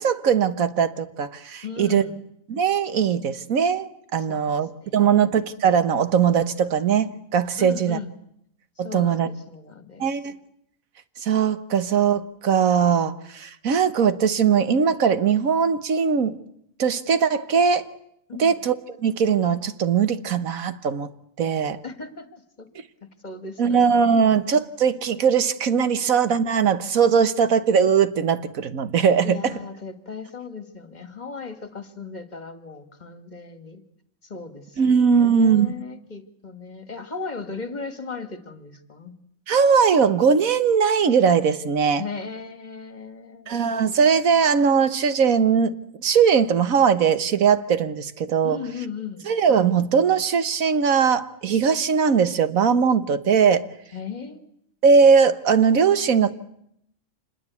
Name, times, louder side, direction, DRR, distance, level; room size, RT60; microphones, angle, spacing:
voice 1, 0.0-2.0 2.5-8.0 8.8-9.3 10.0-10.3 11.2-16.4 16.8-17.9 18.4-18.7 19.0-21.1 21.4-21.8 23.6-29.5 34.8-35.7 39.5-42.0 43.5-45.7 46.0-48.6 49.3-53.7 54.8-56.3, right 6 dB, 85° right, 12 dB, 1.7 m, -20 dB
voice 2, 1.6-2.2 4.2-5.4 7.6-8.1 8.8-10.2 18.3-18.6 21.8-22.7 23.2-23.9 29.2-33.8 34.2-39.1 42.0-43.5 48.4-49.2 53.9-54.5, left 5 dB, 35° left, 10 dB, 2.0 m, -37 dB
26.5 x 21.0 x 8.4 m, 0.73 s
omnidirectional pair, 1.4 m